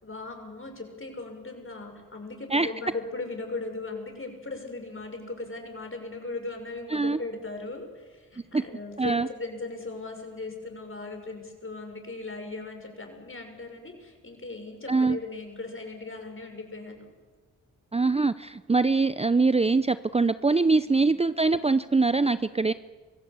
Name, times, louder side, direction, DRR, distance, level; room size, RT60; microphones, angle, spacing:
voice 1, 0.0-17.1 20.9-21.1, left 3 dB, 40° left, 4 dB, 6.1 m, -38 dB
voice 2, 17.9-22.7, right 3 dB, 20° right, 14 dB, 0.6 m, -23 dB
24.5 x 16.0 x 8.2 m, 1.4 s
cardioid pair, 50°, 33 cm